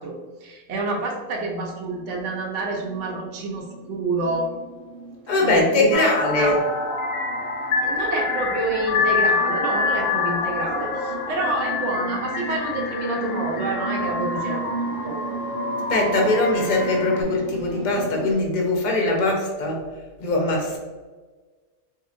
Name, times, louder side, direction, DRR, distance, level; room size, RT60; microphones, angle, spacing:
voice 1, 0.0-4.5 5.4-6.5 7.8-14.6 15.0-15.2, right 2 dB, 65° right, -1 dB, 0.9 m, -28 dB
sound 1, 1.8-18.3, right 3 dB, 85° right, 1.2 m, -36 dB
voice 2, 5.3-6.6 15.9-19.8 20.2-20.8, left 2 dB, 40° left, 0 dB, 0.7 m, -21 dB
sound 2, 5.9-17.2, left 4 dB, 70° left, 0.9 m, -27 dB
4.1 x 2.8 x 2.5 m, 1.4 s
omnidirectional pair, 1.4 m